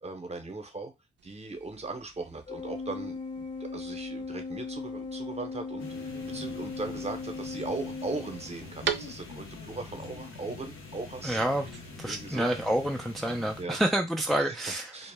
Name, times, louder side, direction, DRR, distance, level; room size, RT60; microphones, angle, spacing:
voice 1, 0.0-0.9 1.2-11.4 12.0-12.5 13.6-13.8 14.3-14.6 14.9-15.1, right 3 dB, 30° right, 0.8 m, -38 dB
sound 1, 1.2-9.7, right 8 dB, 65° right, 0.4 m, -42 dB
Organ, 2.5-9.0, left 4 dB, 35° left, 0.7 m, -38 dB
sound 2, 5.8-13.6, left 3 dB, 90° left, 0.6 m, -45 dB
voice 2, 11.2-11.7 12.0-14.9, right 1 dB, ahead, 0.4 m, -28 dB
2.1 x 2.0 x 3.3 m
cardioid pair, 55°, 21 cm